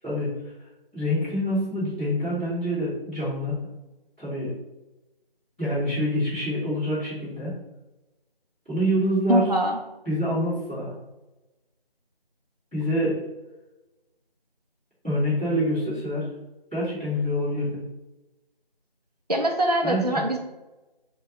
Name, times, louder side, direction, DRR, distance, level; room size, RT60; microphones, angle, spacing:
voice 1, 0.9-3.6 4.2-4.5 5.6-7.5 8.7-9.5 10.0-10.9 12.7-13.1 15.0-16.2 16.7-17.7 19.8-20.1, equal, 10° right, -20 dB, 1.5 m, -26 dB
voice 2, 9.3-9.8 19.3-20.4, right 1 dB, 45° right, 1 dB, 0.5 m, -23 dB
4.2 x 2.2 x 2.9 m, 1.0 s
figure-of-eight pair, 170°, 30 cm